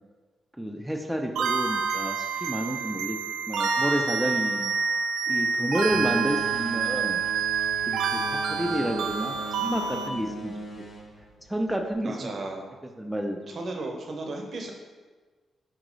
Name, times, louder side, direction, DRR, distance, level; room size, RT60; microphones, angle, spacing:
voice 1, 0.6-3.2 3.5-4.7 5.3-7.2 7.9-10.5 11.5-12.3 13.0-13.4, right 1 dB, 5° right, 2 dB, 0.4 m, -30 dB
sound 1, 1.4-10.1, right 5 dB, 85° right, 0.3 m, -28 dB
sound 2, 5.9-11.9, left 1 dB, 65° left, 0.8 m, -39 dB
voice 2, 12.0-12.6 13.5-14.7, right 2 dB, 60° right, 2 dB, 0.7 m, -35 dB
4.5 x 3.0 x 3.8 m, 1.4 s
cardioid pair, 65°, 0 cm